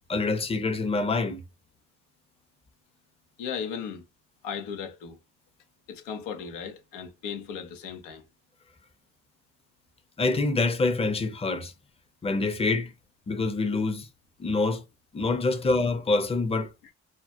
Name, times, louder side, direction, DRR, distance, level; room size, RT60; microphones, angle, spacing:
voice 1, 0.1-1.4 10.2-11.7 12.2-12.9 13.3-14.1 14.4-14.8 15.1-16.7, left 3 dB, 20° left, 0.5 m, -26 dB
voice 2, 3.4-4.1 4.4-5.2 5.9-8.2 15.5-15.6 16.8-16.9, left 7 dB, 85° left, 0.6 m, -36 dB
2.2 x 2.1 x 2.7 m
hypercardioid pair, 45°, 33 cm